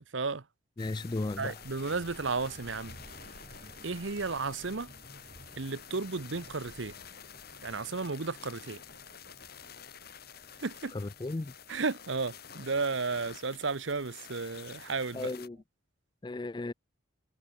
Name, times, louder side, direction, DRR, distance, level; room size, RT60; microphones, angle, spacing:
voice 1, 0.1-0.4 1.4-3.0 3.8-4.9 5.6-6.9 7.6-8.8 10.6-10.9 11.7-15.3, right 4 dB, 65° right, 0.9 m, -33 dB
sound 1, 0.8-15.5, left 8 dB, 50° left, 2.6 m, -50 dB
voice 2, 0.8-1.6 10.9-11.5 15.1-15.6 16.2-16.7, left 2 dB, 20° left, 0.4 m, -35 dB
sound 2, 1.0-15.6, right 1 dB, 35° right, 6.4 m, -56 dB
head